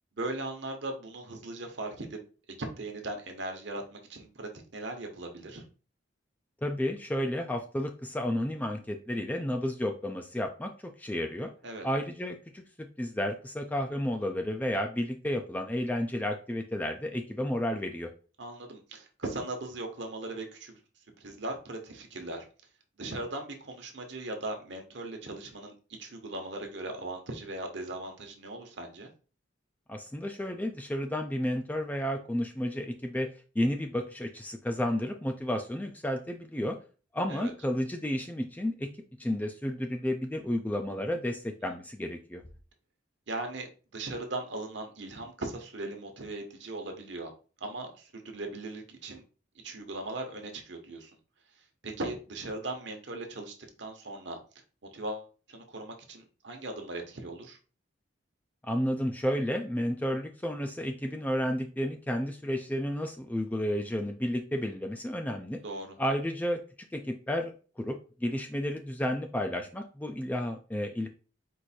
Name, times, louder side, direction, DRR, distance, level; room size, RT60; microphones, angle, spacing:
voice 1, 0.2-2.2 2.6-5.6 11.6-11.9 18.4-20.8 21.2-22.4 23.0-25.7 26.0-29.1 37.3-37.5 43.3-43.7 43.9-47.3 47.6-49.2 49.6-51.1 51.8-54.4 54.9-57.6 65.6-66.0, right 2 dB, 65° right, 4 dB, 1.0 m, -38 dB
voice 2, 6.6-11.5 11.8-18.1 29.9-33.3 33.6-36.8 37.1-38.9 39.2-42.4 58.6-65.6 66.0-66.6 66.9-71.1, equal, 10° left, 5 dB, 0.3 m, -32 dB
4.6 x 2.6 x 4.2 m, 0.36 s
head